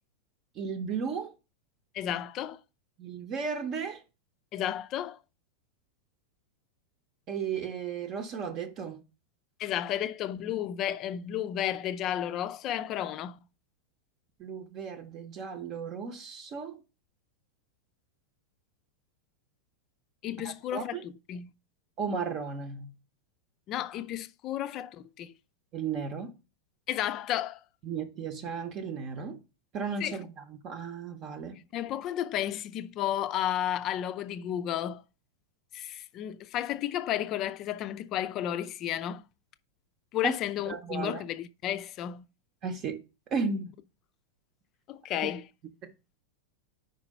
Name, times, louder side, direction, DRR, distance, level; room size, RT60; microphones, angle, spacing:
voice 1, 0.5-1.3 3.0-4.0 7.3-9.0 14.4-16.8 20.4-21.0 22.0-22.9 25.7-26.3 27.8-29.4 29.7-31.6 40.2-40.3 40.7-41.2 42.6-43.0 43.3-43.7 45.2-45.3 45.8-45.9, right 5 dB, 35° right, 0.8 m, -35 dB
voice 2, 1.9-2.6 4.5-5.2 9.6-13.4 20.2-21.5 23.7-25.3 26.9-27.6 30.0-30.2 31.7-35.0 35.7-39.2 40.1-42.3 44.9-45.5, left 11 dB, 35° left, 0.5 m, -32 dB
5.2 x 4.8 x 5.4 m
figure-of-eight pair, 90°, 0 cm